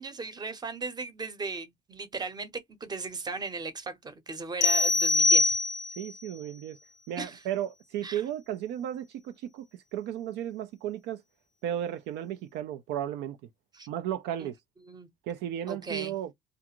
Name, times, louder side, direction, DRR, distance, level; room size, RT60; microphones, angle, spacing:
voice 1, 0.0-5.6 7.2-7.4 8.0-8.2 13.7-13.9 14.4-14.5 14.8-15.1 15.7-16.1, right 4 dB, 25° right, 0.8 m, -37 dB
sound 1, 4.6-6.1, left 3 dB, 50° left, 0.4 m, -23 dB
voice 2, 6.0-6.8 7.1-11.2 11.6-13.4 13.9-14.6 15.2-16.3, right 11 dB, 85° right, 0.4 m, -34 dB
2.4 x 2.4 x 2.9 m
cardioid pair, 110°, 17 cm